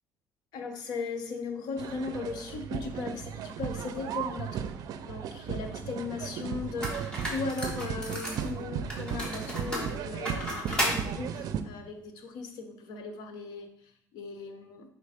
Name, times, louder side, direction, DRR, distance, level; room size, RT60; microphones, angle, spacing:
voice 1, 0.5-4.7 5.0-14.9, left 4 dB, 75° left, 6 dB, 0.9 m, -38 dB
sound 1, 1.8-11.6, right 8 dB, 60° right, 0.5 m, -36 dB
sound 2, 6.2-6.3 6.8-8.5 8.9-11.0, equal, 15° left, 1.8 m, -33 dB
4.9 x 4.1 x 5.0 m, 0.72 s
cardioid pair, 135°, 7 cm